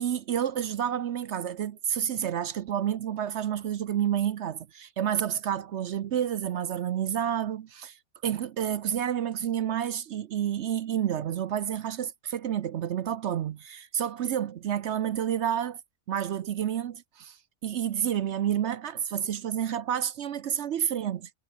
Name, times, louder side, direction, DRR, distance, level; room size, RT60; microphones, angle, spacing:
voice 1, 0.0-8.0 8.2-15.8 16.1-17.4 17.6-21.3, right 9 dB, 60° right, 0.8 m, -29 dB
omnidirectional pair, 1.5 m